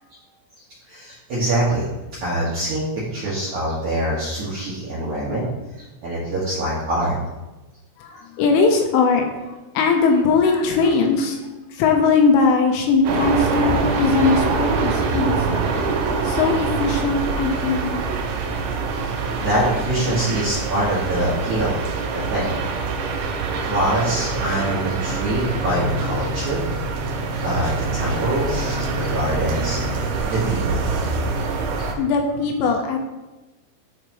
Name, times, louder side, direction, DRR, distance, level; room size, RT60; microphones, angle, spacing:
voice 1, 0.9-1.9 2.2-2.9 3.1-5.5 6.0-7.2 19.4-21.8 22.1-22.5 23.6-26.6 27.4-29.8 30.2-31.1 31.8-31.9, right 1 dB, 70° right, -8 dB, 1.8 m, -24 dB
voice 2, 8.0-11.4 11.7-15.7 16.2-18.0 32.0-33.0, left 4 dB, 85° left, 3 dB, 3.2 m, -20 dB
sound 1, 13.0-31.9, right 4 dB, 90° right, 2.2 m, -24 dB
11.5 x 5.0 x 3.0 m, 1.1 s
omnidirectional pair, 5.8 m